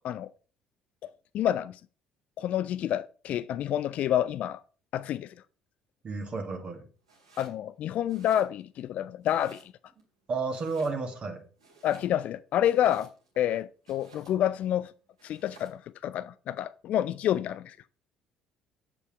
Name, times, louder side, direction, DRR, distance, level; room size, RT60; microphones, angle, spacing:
voice 1, 1.3-1.8 2.4-4.6 4.9-5.3 7.4-9.6 11.8-13.1 13.4-14.9 15.2-17.8, left 11 dB, 50° left, 0.4 m, -28 dB
voice 2, 6.0-6.8 10.3-11.4, right 4 dB, 40° right, 1.8 m, -32 dB
Domestic sounds home sounds, 7.0-7.6 8.0-8.9 9.2-10.0 10.5-11.2 11.6-13.4 13.8-14.6 15.2-15.8, right 3 dB, 80° right, 2.3 m, -56 dB
8.6 x 6.9 x 4.6 m
figure-of-eight pair, 50°, 3 cm